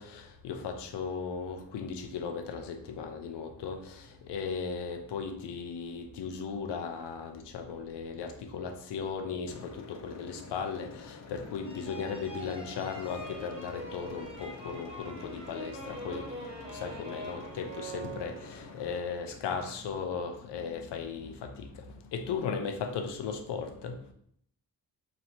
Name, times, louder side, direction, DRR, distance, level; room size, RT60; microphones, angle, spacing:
voice 1, 0.0-16.3 16.7-21.8 22.1-24.0, left 6 dB, 85° left, 0.7 m, -37 dB
voice 2, 3.7-4.2 19.3-20.1, left 1 dB, 5° left, 1.2 m, -56 dB
sound 1, 9.5-19.0, left 4 dB, 45° left, 0.4 m, -48 dB
sound 2, 11.6-18.8, right 1 dB, 15° right, 0.5 m, -44 dB
3.1 x 2.8 x 4.2 m
wide cardioid pair, 150°, 40 cm